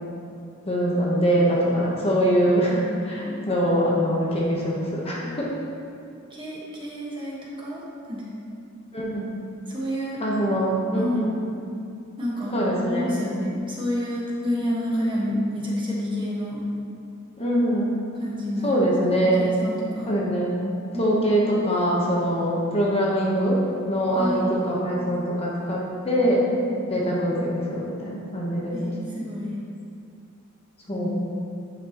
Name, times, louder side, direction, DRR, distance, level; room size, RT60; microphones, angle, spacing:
voice 1, 0.6-5.5 8.9-9.3 10.2-11.3 12.5-13.1 17.4-17.9 18.6-19.5 20.1-20.5 21.0-23.6 23.9-26.4 26.9-28.8 30.9-31.1, equal, 30° left, -4 dB, 1.1 m, -23 dB
voice 2, 2.7-3.4 6.3-8.2 9.7-10.2 10.9-11.4 12.2-12.5 12.9-16.6 18.1-20.1 20.9-21.3 24.1-24.7 26.7-27.0 28.7-29.5 30.9-31.1, left 1 dB, 25° right, -6 dB, 1.4 m, -29 dB
9.3 x 5.9 x 3.0 m, 2.5 s
head